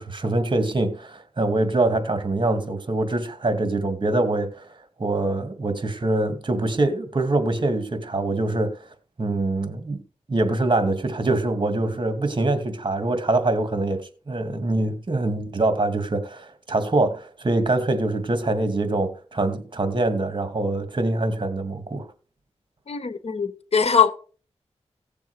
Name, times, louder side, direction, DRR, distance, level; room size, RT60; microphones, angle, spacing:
voice 1, 0.0-10.0 10.3-14.0 14.3-22.1, right 2 dB, 45° right, 2.4 m, -24 dB
voice 2, 22.9-24.1, left 6 dB, 65° left, 1.5 m, -21 dB
17.0 x 7.0 x 5.0 m
wide cardioid pair, 70°, 11 cm